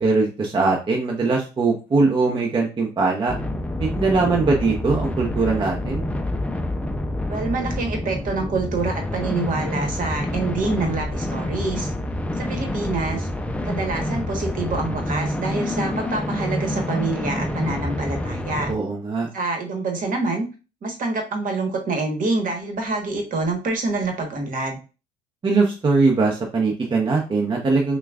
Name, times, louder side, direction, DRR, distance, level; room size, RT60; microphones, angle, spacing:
voice 1, 0.0-3.4 3.8-6.0 18.7-19.3 25.4-28.0, right 3 dB, 25° right, -1 dB, 0.7 m, -21 dB
sound 1, 3.3-18.7, left 1 dB, 5° left, 0.4 m, -27 dB
voice 2, 7.3-11.9 12.4-13.3 13.6-18.7 19.3-20.4 20.8-24.8, right 3 dB, 45° right, 3 dB, 1.2 m, -26 dB
5.8 x 2.3 x 2.3 m, 0.33 s
cardioid pair, 95°, 19 cm